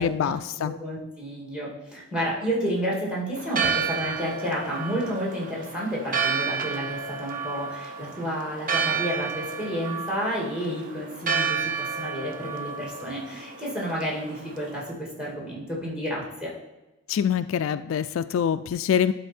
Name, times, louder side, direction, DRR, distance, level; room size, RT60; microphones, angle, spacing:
voice 1, 0.0-0.7 17.1-19.1, left 8 dB, 70° left, 13 dB, 0.3 m, -25 dB
voice 2, 0.6-16.5, equal, 5° right, -3 dB, 2.1 m, -31 dB
Church bell, 3.4-14.9, right 6 dB, 45° right, 0.7 m, -31 dB
12.0 x 3.9 x 4.3 m, 1.0 s
head